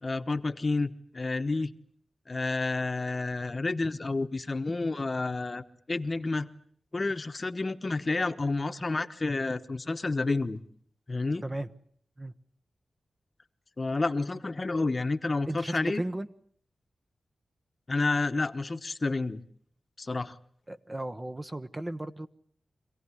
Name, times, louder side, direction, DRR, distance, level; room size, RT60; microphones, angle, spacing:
voice 1, 0.0-1.7 2.3-6.5 6.9-10.6 11.1-11.4 13.8-16.0 17.9-19.4 20.0-20.3, left 3 dB, 35° left, 10 dB, 1.2 m, -30 dB
voice 2, 15.5-16.3 20.7-22.3, right 1 dB, 20° right, 9 dB, 1.0 m, -35 dB
26.0 x 17.0 x 9.9 m, 0.62 s
wide cardioid pair, 90°, 0 cm